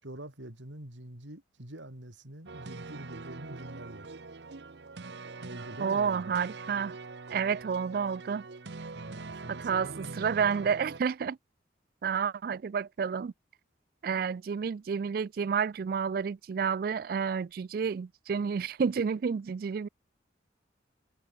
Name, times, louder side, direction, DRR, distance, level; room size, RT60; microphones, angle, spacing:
voice 1, 0.0-4.1 5.4-6.4 8.9-10.7, right 1 dB, 85° right, 3.8 m, -45 dB
sound 1, 2.5-11.0, right 3 dB, 70° right, 0.8 m, -43 dB
voice 2, 5.8-7.0 7.3-8.4 9.5-11.4 12.0-13.3 14.0-19.9, right 6 dB, 50° right, 0.3 m, -30 dB
head